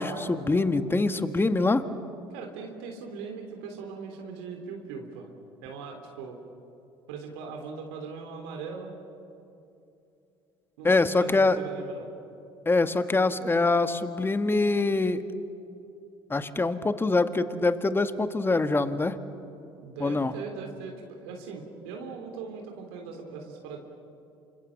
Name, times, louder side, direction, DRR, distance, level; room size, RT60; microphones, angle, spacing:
voice 1, 0.0-1.8 10.8-11.6 12.6-15.2 16.3-19.1 20.0-20.3, left 3 dB, 15° left, 10 dB, 1.7 m, -24 dB
voice 2, 2.3-5.3 5.6-6.4 7.1-8.9 10.8-12.1 19.8-23.8, right 5 dB, 75° right, 2 dB, 3.5 m, -40 dB
28.5 x 25.5 x 7.4 m, 2.7 s
hypercardioid pair, 65°, 13 cm